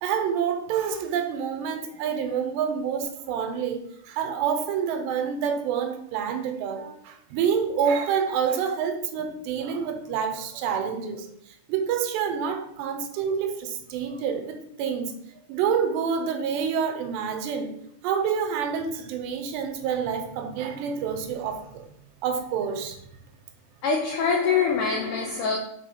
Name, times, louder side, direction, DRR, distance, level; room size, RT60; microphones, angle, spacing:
voice 1, 0.0-11.3 11.7-15.1 15.5-17.7 18.0-21.9 22.2-23.0, right 7 dB, 85° right, 3.1 m, -27 dB
voice 2, 23.8-25.6, left 5 dB, 85° left, 1.9 m, -24 dB
6.0 x 4.5 x 5.9 m
omnidirectional pair, 4.8 m